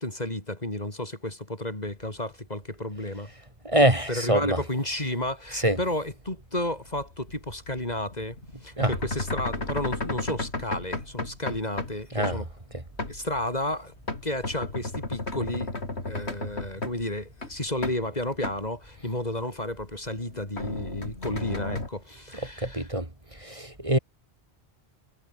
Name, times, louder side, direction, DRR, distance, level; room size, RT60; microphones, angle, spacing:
voice 1, 0.0-3.3 4.1-12.5 13.1-13.9 14.2-15.7 16.1-22.9, left 1 dB, 40° left, 4.4 m, -32 dB
voice 2, 3.6-4.6 5.5-5.8 8.8-8.9 12.1-12.4 22.6-24.0, right 1 dB, 30° right, 3.2 m, -24 dB
sound 1, 7.0-12.0 12.2-12.4 13.0-13.4 13.7-17.1 17.4-18.0 18.3-18.7 19.0-19.1 19.7-21.9, left 2 dB, 85° left, 4.2 m, -33 dB
omnidirectional pair, 1.1 m